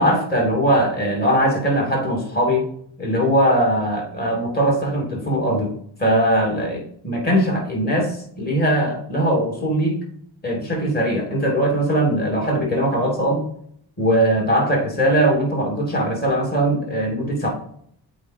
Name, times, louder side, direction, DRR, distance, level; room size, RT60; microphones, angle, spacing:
voice 1, 0.0-2.7 3.0-5.7 6.0-10.0 10.4-13.4 14.0-17.5, right 1 dB, 20° left, 0 dB, 2.6 m, -20 dB
8.0 x 4.9 x 2.7 m, 0.63 s
cardioid pair, 90°, 41 cm